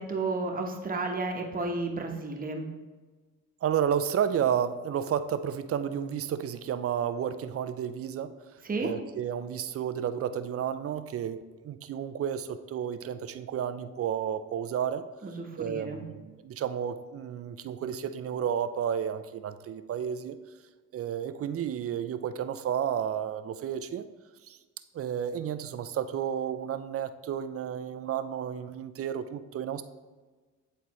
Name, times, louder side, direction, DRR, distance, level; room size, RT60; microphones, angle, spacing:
voice 1, 0.0-2.7 8.6-8.9 15.2-16.0, right 3 dB, 30° right, 2 dB, 1.1 m, -32 dB
voice 2, 3.6-8.3 8.8-15.0 15.6-20.4 20.9-24.1 24.5-24.6 24.9-29.8, right 9 dB, 50° right, 12 dB, 0.4 m, -31 dB
9.3 x 4.1 x 3.1 m, 1.3 s
cardioid pair, 90°, 30 cm